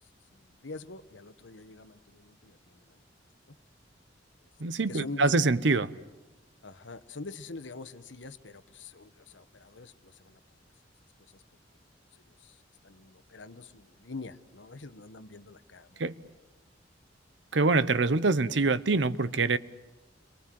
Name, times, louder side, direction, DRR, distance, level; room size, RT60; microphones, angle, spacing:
voice 1, 0.0-3.0 3.5-3.6 4.4-4.5 4.9-5.3 6.6-10.4 11.3-11.4 12.1-16.0 18.0-18.1, left 3 dB, 85° left, 1.2 m, -45 dB
voice 2, 4.6-5.9 16.0-16.1 17.5-19.6, right 3 dB, 75° right, 0.8 m, -25 dB
29.5 x 23.5 x 7.7 m
head